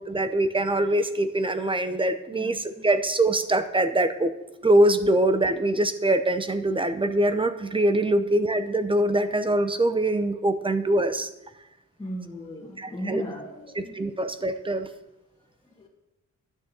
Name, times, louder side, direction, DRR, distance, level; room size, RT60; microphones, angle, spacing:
voice 1, 0.0-4.3 4.6-11.3 12.8-13.2 13.9-14.9, right 1 dB, 15° right, 10 dB, 0.7 m, -23 dB
voice 2, 12.0-14.0 15.6-15.9, equal, 15° left, -6 dB, 1.8 m, -37 dB
11.0 x 6.3 x 8.5 m, 0.93 s
wide cardioid pair, 145°, 29 cm